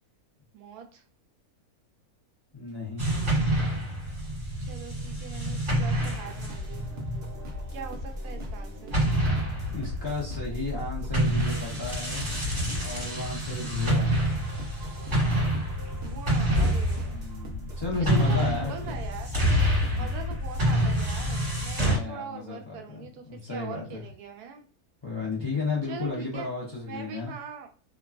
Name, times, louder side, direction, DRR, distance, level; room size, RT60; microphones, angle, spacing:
voice 1, 0.5-1.0 4.7-6.9 7.7-8.9 15.9-17.2 18.0-19.3 19.9-24.6 25.9-26.5 26.9-27.7, right 6 dB, 85° right, 4 dB, 1.1 m, -42 dB
voice 2, 2.5-3.1 9.7-12.2 12.8-14.1 17.0-19.0 19.9-20.1 21.8-24.0 25.0-27.3, left 4 dB, 40° left, -4 dB, 0.3 m, -33 dB
sound 1, 3.0-8.6 8.9-22.0, equal, 35° right, 1.6 m, -27 dB
sound 2, 6.0-21.3, left 2 dB, 55° right, 0.8 m, -42 dB
2.9 x 2.3 x 2.4 m, 0.40 s
omnidirectional pair, 1.6 m